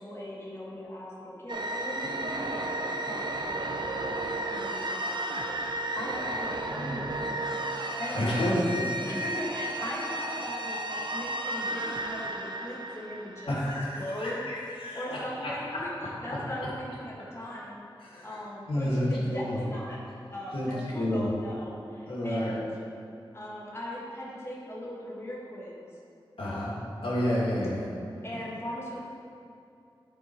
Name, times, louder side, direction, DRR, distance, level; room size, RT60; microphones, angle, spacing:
voice 1, 0.0-4.2 4.5-7.4 8.0-8.6 9.0-13.5 13.9-14.4 14.9-15.9 16.2-17.8 18.2-20.0 20.3-22.7 23.3-25.9 26.4-26.9 28.2-29.0, equal, 30° left, -6 dB, 1.7 m, -39 dB
sound 1, 1.5-14.0, right 1 dB, 55° right, 0.7 m, -33 dB
voice 2, 8.1-8.8 13.5-15.8 18.0-18.4 18.7-19.6 20.5-21.3 22.1-22.6 26.4-26.7 27.0-27.9, left 1 dB, 75° left, -7 dB, 2.0 m, -30 dB
9.9 x 4.6 x 4.5 m, 2.6 s
wide cardioid pair, 55°, 9 cm